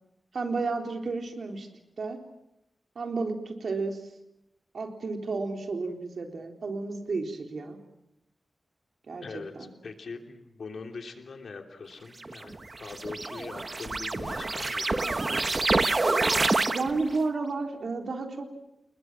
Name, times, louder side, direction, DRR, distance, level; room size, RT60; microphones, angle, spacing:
voice 1, 0.3-1.7 2.0-2.2 3.0-4.0 4.7-7.8 9.1-9.2 9.5-9.7 16.7-18.5, right 3 dB, 75° right, 4 dB, 3.9 m, -32 dB
voice 2, 9.2-15.3, left 4 dB, 80° left, 5 dB, 3.1 m, -42 dB
sound 1, 12.2-17.2, right 3 dB, 40° right, 1.2 m, -27 dB
29.5 x 20.5 x 7.5 m, 0.86 s
wide cardioid pair, 95°, 0 cm